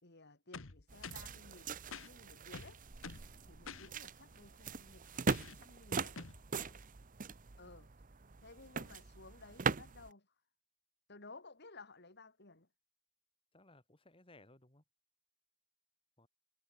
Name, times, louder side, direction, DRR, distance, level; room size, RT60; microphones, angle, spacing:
voice 1, 0.0-2.8 3.5-6.2 7.6-7.9 8.4-10.3 11.1-12.7, left 3 dB, 55° left, 3.9 m, -57 dB
sound 1, 0.5-1.3 1.9-2.1 2.5-3.3 3.7-3.9 5.3-5.6 6.2-6.4, left 5 dB, 70° left, 1.5 m, -48 dB
sound 2, 0.9-10.1, right 4 dB, 40° right, 0.9 m, -41 dB
voice 2, 3.1-3.5 6.5-6.8 13.5-14.8 16.2-16.3, left 2 dB, 25° left, 5.5 m, -63 dB
head